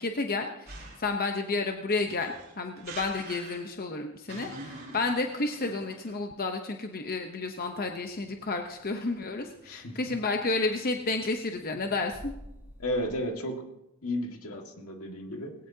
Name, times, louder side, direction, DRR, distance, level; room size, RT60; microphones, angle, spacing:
voice 1, 0.0-12.3, left 3 dB, 40° left, 4 dB, 0.8 m, -31 dB
sound 1, 0.7-1.2 1.9-3.8 4.3-6.1, right 3 dB, 45° right, 5.6 m, -44 dB
sound 2, 7.4-13.2, equal, 10° right, 6.4 m, -52 dB
voice 2, 9.6-10.1 12.8-13.7 14.0-15.5, equal, 75° left, 3 dB, 1.8 m, -33 dB
19.5 x 17.0 x 2.8 m, 0.91 s
head